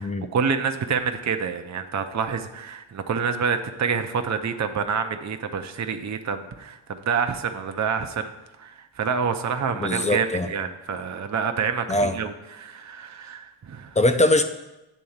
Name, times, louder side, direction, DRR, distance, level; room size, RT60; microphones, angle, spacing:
voice 1, 0.0-8.3 8.6-14.0, right 6 dB, 35° right, 7 dB, 0.5 m, -27 dB
voice 2, 9.7-10.5 11.9-12.2 14.0-14.4, left 1 dB, 15° left, 8 dB, 0.5 m, -21 dB
9.2 x 3.8 x 7.1 m, 0.99 s
wide cardioid pair, 120°, 50 cm